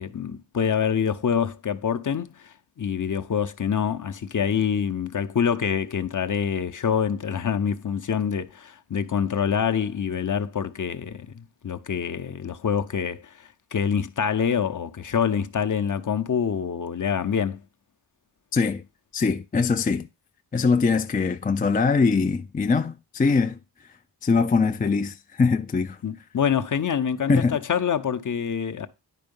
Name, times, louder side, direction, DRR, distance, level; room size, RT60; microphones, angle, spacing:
voice 1, 0.0-17.6 26.0-28.9, left 7 dB, 45° left, 0.8 m, -26 dB
voice 2, 18.5-18.8 19.1-20.1 20.5-23.6 24.2-26.0 27.3-27.6, left 4 dB, 20° left, 0.4 m, -22 dB
10.0 x 4.4 x 5.4 m
cardioid pair, 75°, 42 cm